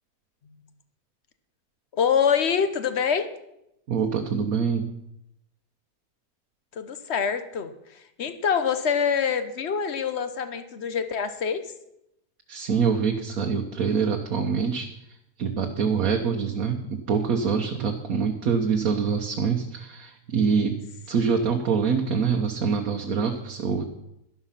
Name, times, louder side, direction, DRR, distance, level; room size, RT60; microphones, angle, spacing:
voice 1, 1.9-3.3 6.7-11.7 21.2-21.3, left 7 dB, 45° left, 11 dB, 1.1 m, -25 dB
voice 2, 3.9-4.9 12.5-14.9 15.4-20.8 21.1-23.8, right 6 dB, 60° right, 2 dB, 1.4 m, -25 dB
12.0 x 11.5 x 5.8 m, 0.83 s
omnidirectional pair, 1.7 m